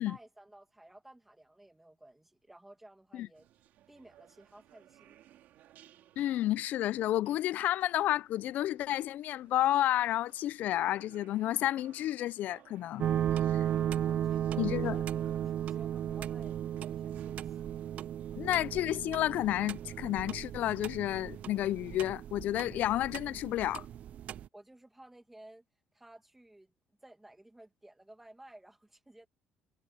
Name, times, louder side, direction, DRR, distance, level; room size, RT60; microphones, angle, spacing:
voice 1, 0.0-3.5 3.9-5.2 13.6-16.6 16.9-17.6 24.5-25.6 25.9-26.7 27.0-29.3, right 1 dB, 5° right, 2.0 m, -56 dB
sound 1, 3.3-22.0, right 13 dB, 70° right, 3.7 m, -62 dB
voice 2, 6.2-13.1 13.5-13.6 14.6-15.0 18.4-23.8, left 13 dB, 60° left, 0.3 m, -31 dB
sound 2, 13.0-24.5, right 10 dB, 45° right, 0.3 m, -35 dB
cardioid pair, 145°, 3 cm